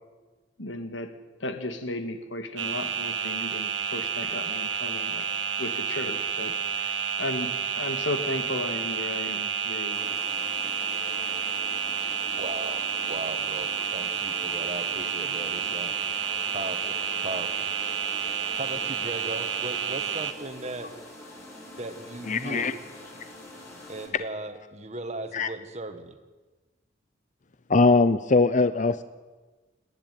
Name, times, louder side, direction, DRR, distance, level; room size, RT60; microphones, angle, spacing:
voice 1, 0.6-1.1 1.4-5.2 5.6-6.5 7.2-10.2, left 1 dB, 85° left, 8 dB, 2.0 m, -34 dB
sound 1, 2.6-20.3, right 8 dB, 80° right, 1.5 m, -30 dB
sound 2, 9.9-24.1, left 1 dB, 15° left, 5.3 m, -45 dB
voice 2, 12.4-15.9 16.5-17.0 17.2-17.6 18.6-20.9 21.8-22.8 23.9-26.2, right 2 dB, 35° right, 8 dB, 1.7 m, -37 dB
voice 3, 22.3-22.7 25.3-25.5 27.7-29.0, left 3 dB, 40° left, 12 dB, 0.7 m, -21 dB
29.5 x 10.5 x 9.3 m, 1.3 s
head